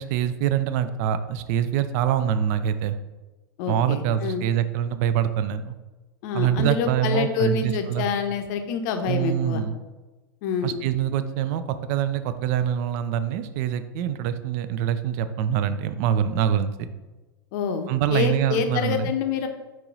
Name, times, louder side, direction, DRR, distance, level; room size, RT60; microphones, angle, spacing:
voice 1, 0.0-3.0 3.7-5.8 6.3-8.1 9.1-9.8 10.6-16.9 17.9-19.1, right 10 dB, 50° right, 11 dB, 0.3 m, -25 dB
voice 2, 3.6-4.4 6.2-9.6 10.4-10.8 17.5-19.5, left 6 dB, 50° left, 6 dB, 0.6 m, -27 dB
4.4 x 3.0 x 3.9 m, 1.2 s
figure-of-eight pair, 90°, 12 cm